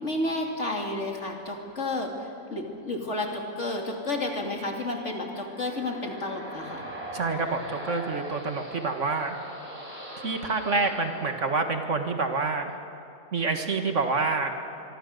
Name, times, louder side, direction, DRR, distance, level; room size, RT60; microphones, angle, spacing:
voice 1, 0.0-6.8, left 2 dB, 55° left, 1 dB, 3.1 m, -31 dB
sound 1, 5.0-12.3, right 1 dB, 10° right, 5.9 m, -41 dB
voice 2, 7.1-9.4 10.2-12.8 13.3-14.5, right 3 dB, 60° right, 5 dB, 2.0 m, -27 dB
25.0 x 24.0 x 6.7 m, 2.7 s
omnidirectional pair, 1.4 m